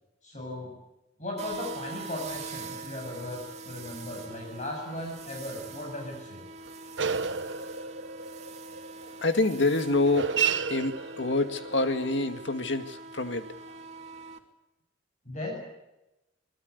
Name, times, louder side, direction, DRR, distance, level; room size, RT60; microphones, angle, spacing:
voice 1, 0.2-0.7 1.2-6.4 15.2-15.6, left 1 dB, 40° left, 0 dB, 8.0 m, -37 dB
sound 1, 1.4-14.4, right 3 dB, 40° right, 2.8 m, -43 dB
sound 2, 2.5-4.3 5.0-5.1 5.6-5.7 6.7-13.0, right 6 dB, 80° right, 1.5 m, -34 dB
voice 2, 9.2-13.6, left 2 dB, 70° left, 8 dB, 2.2 m, -27 dB
25.5 x 20.5 x 8.2 m, 0.97 s
head